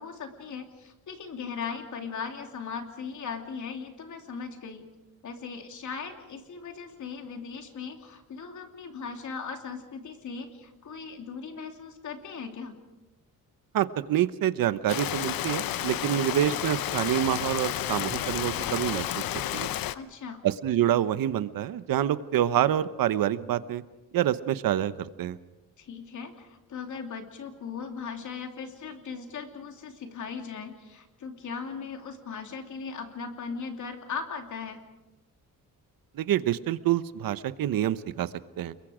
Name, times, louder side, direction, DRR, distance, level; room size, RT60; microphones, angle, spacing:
voice 1, 0.0-4.8 5.2-12.8 19.9-20.4 25.8-34.8, left 5 dB, 60° left, 4 dB, 2.9 m, -38 dB
voice 2, 13.7-19.2 19.5-19.7 20.4-23.8 24.1-25.4 36.1-38.3 38.6-38.7, right 11 dB, 80° right, 14 dB, 1.0 m, -27 dB
Rain, 14.9-19.9, left 12 dB, 85° left, 0.9 m, -31 dB
29.5 x 22.0 x 5.0 m, 1.0 s
wide cardioid pair, 155°, 34 cm